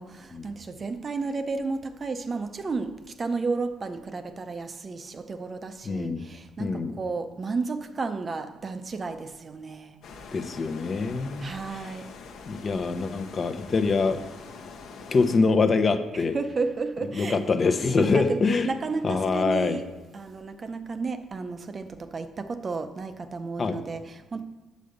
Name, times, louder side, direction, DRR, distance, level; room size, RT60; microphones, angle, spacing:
voice 1, 0.0-10.0 11.4-12.1 16.1-17.5 17.8-19.9 20.1-24.4, right 4 dB, 40° right, 0.6 m, -33 dB
voice 2, 5.8-6.2 6.6-6.9 10.3-11.9 12.5-14.2 15.1-16.4 17.1-18.7 19.0-19.8 23.6-23.8, left 4 dB, 40° left, 0.7 m, -25 dB
sound 1, 10.0-15.4, left 5 dB, 75° left, 1.0 m, -44 dB
6.8 x 5.3 x 6.5 m
cardioid pair, 90°, 0 cm